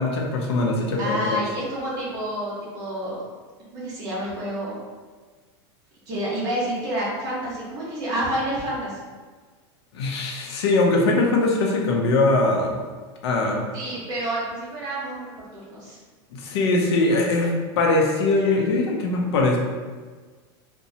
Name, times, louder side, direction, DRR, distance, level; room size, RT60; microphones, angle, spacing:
voice 1, 0.0-1.4 9.9-12.8 13.2-13.6 16.3-19.6, left 2 dB, 75° left, 0 dB, 0.7 m, -21 dB
voice 2, 1.0-3.2 3.7-4.7 6.1-9.0 13.7-16.0, right 1 dB, 25° right, -7 dB, 1.0 m, -29 dB
4.0 x 2.3 x 2.7 m, 1.4 s
supercardioid pair, 175°, 14 cm